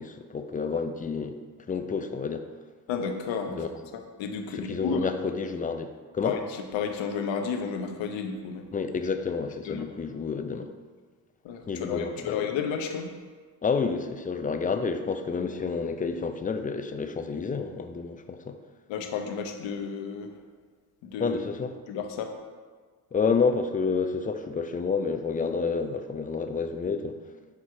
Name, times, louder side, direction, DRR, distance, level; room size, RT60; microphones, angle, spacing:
voice 1, 0.0-1.3 1.7-2.4 3.6-3.7 4.7-6.3 8.7-10.7 11.7-12.4 13.6-18.6 21.2-21.7 23.1-27.2, left 5 dB, 20° left, 8 dB, 0.4 m, -29 dB
voice 2, 2.9-3.7 3.9-5.1 6.2-8.7 9.6-9.9 11.4-13.1 18.9-20.4 21.0-21.4 21.9-22.3, left 6 dB, 85° left, 5 dB, 0.8 m, -32 dB
6.7 x 3.0 x 4.7 m, 1.5 s
cardioid pair, 75°, 44 cm